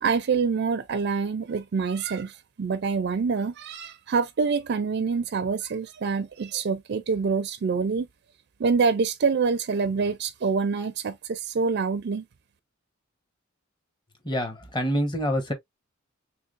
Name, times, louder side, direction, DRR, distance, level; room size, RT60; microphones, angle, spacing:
voice 1, 0.0-8.1 8.6-12.2, right 5 dB, 55° right, 0.4 m, -26 dB
voice 2, 14.2-15.5, equal, 20° left, 1.0 m, -26 dB
3.4 x 3.4 x 2.4 m
head